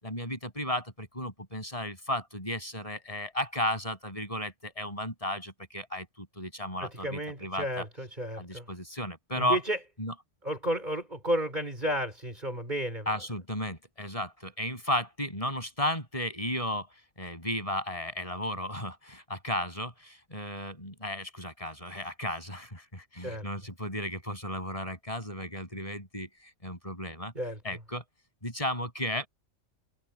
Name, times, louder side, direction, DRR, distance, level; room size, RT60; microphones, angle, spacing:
voice 1, 0.0-7.8 8.4-9.6 10.0-10.1 13.1-26.3 26.6-27.3 27.6-28.0 28.4-29.3, left 1 dB, 25° left, 8.0 m, -34 dB
voice 2, 6.8-8.7 9.4-9.8 10.4-13.1 23.2-23.5 27.3-27.6, equal, 35° right, 5.0 m, -32 dB
omnidirectional pair, 1.3 m